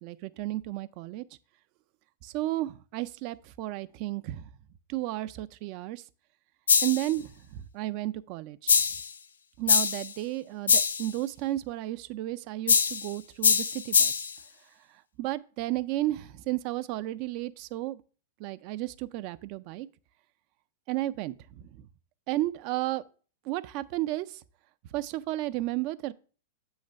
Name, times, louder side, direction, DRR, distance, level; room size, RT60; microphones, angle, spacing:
voice 1, 0.0-1.3 2.2-4.5 4.9-6.0 6.8-8.7 9.6-14.1 14.9-18.0 18.4-19.9 20.9-21.9 22.3-23.0 23.4-24.4 24.9-26.1, right 16 dB, 50° right, 0.4 m, -33 dB
sound 1, 6.7-7.1 8.7-9.1 9.7-10.1 10.7-11.1 12.7-13.1 13.4-14.3, left 6 dB, 85° left, 0.3 m, -23 dB
7.9 x 3.2 x 6.2 m
hypercardioid pair, 105°, 0 cm